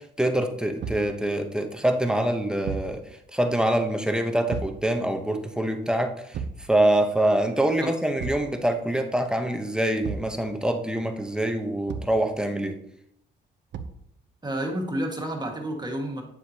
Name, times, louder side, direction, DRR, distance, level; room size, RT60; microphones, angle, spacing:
voice 1, 0.0-3.0 3.3-12.8, right 1 dB, 5° right, 5 dB, 1.0 m, -25 dB
Thump thud, 0.8-1.1 2.6-3.0 4.5-4.8 6.3-6.7 8.2-8.5 10.0-10.4 11.9-12.2 13.7-14.1, right 6 dB, 65° right, 0.8 m, -33 dB
voice 2, 14.4-16.2, right 1 dB, 20° right, 1 dB, 1.9 m, -30 dB
8.7 x 7.3 x 2.9 m, 0.74 s
cardioid pair, 90°, 20 cm